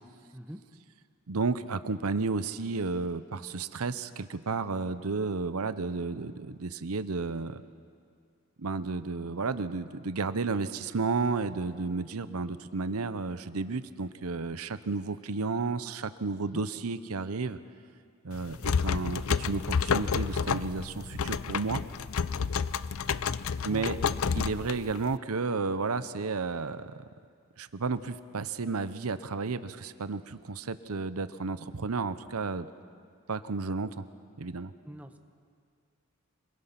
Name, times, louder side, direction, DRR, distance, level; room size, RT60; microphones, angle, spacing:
voice 1, 1.3-7.6 8.6-17.6 18.2-21.8 23.6-24.0 24.3-27.0 27.6-32.7 33.3-34.0 34.4-34.7, right 4 dB, 90° right, 13 dB, 0.8 m, -32 dB
sound 1, 18.3-25.2, left 6 dB, 75° left, 0.5 m, -30 dB
voice 2, 34.8-35.2, equal, 5° right, 6 dB, 0.9 m, -42 dB
26.0 x 21.5 x 5.9 m, 2.2 s
head